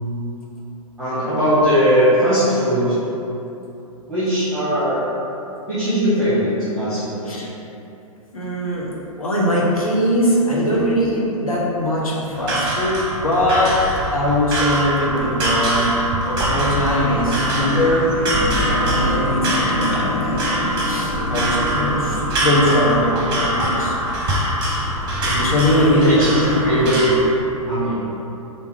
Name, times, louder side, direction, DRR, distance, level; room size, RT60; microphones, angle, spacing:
voice 1, 1.0-2.9 4.1-5.0 5.7-7.2 25.7-27.2 27.7-27.9, equal, ahead, -14 dB, 1.3 m, -19 dB
voice 2, 8.3-8.9 9.2-13.7 14.1-16.0 16.3-18.1 18.9-19.6 20.2-20.4 20.6-23.9 25.2-26.6, equal, 70° left, -5 dB, 1.0 m, -21 dB
sound 1, 12.3-27.1, right 1 dB, 25° right, 0.9 m, -23 dB
sound 2, 15.7-24.5, left 2 dB, 45° left, 0.4 m, -28 dB
3.4 x 2.9 x 4.7 m, 2.9 s
figure-of-eight pair, 110°, 19 cm